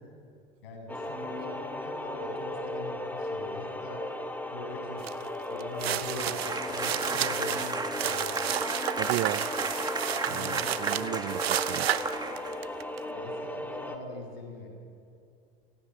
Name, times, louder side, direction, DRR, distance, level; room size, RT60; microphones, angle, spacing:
voice 1, 0.6-4.0 4.5-5.1 5.5-8.4 10.2-10.7 12.9-14.7, left 2 dB, 70° left, 3 dB, 7.9 m, -42 dB
sound 1, 0.9-14.0, left 1 dB, 5° left, 2.1 m, -36 dB
sound 2, 5.0-5.2 5.6-13.0, right 11 dB, 80° right, 1.0 m, -32 dB
sound 3, 6.1-12.8, right 3 dB, 15° right, 2.4 m, -35 dB
voice 2, 9.0-9.5 10.3-11.9, right 18 dB, 45° right, 18 dB, 0.8 m, -34 dB
28.5 x 17.5 x 9.2 m, 2.4 s
hypercardioid pair, 90°, 30 cm